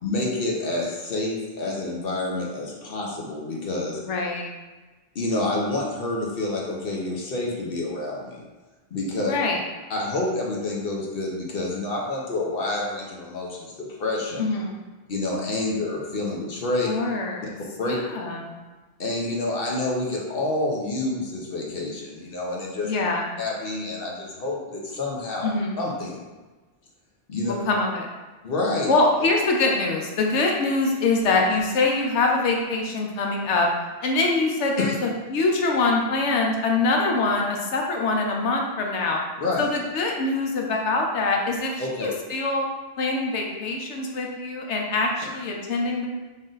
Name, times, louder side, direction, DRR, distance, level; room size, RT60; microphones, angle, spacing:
voice 1, 0.0-4.0 5.1-8.4 8.9-9.3 9.9-14.4 15.1-16.9 17.8-18.0 19.0-22.9 23.4-25.5 25.8-26.2 27.3-27.5 28.4-28.9 34.8-34.9 39.4-39.7 41.8-42.1, left 2 dB, 60° left, -2 dB, 0.9 m, -28 dB
voice 2, 4.0-4.5 9.3-9.6 14.4-14.8 16.9-17.5 17.8-18.5 22.8-23.3 25.4-25.8 27.5-28.1 28.9-33.7 34.0-39.2 39.6-42.7 43.0-46.1, left 3 dB, 80° left, 0 dB, 1.0 m, -24 dB
3.7 x 2.5 x 3.9 m, 1.2 s
omnidirectional pair, 1.2 m